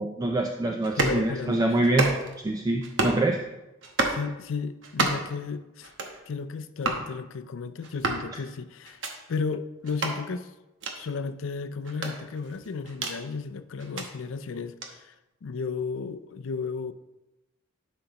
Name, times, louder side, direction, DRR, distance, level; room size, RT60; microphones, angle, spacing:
voice 1, 0.0-2.1 2.4-3.4, right 2 dB, 20° right, 2 dB, 0.4 m, -25 dB
sound 1, 0.8-1.2 1.8-2.4 2.8-3.2 3.8-4.2 4.8-5.3 5.8-6.2 6.8-7.0 7.8-8.3 8.8-9.1 9.8-10.2 10.8-11.0 11.8-13.2 13.8-14.1 14.8-14.9, right 2 dB, 70° right, 1.0 m, -29 dB
voice 2, 1.0-1.7 4.1-5.9 6.3-9.0 9.3-10.5 10.9-15.1 15.4-16.9, left 5 dB, 80° left, 11 dB, 0.4 m, -33 dB
11.5 x 5.3 x 2.9 m, 1.0 s
head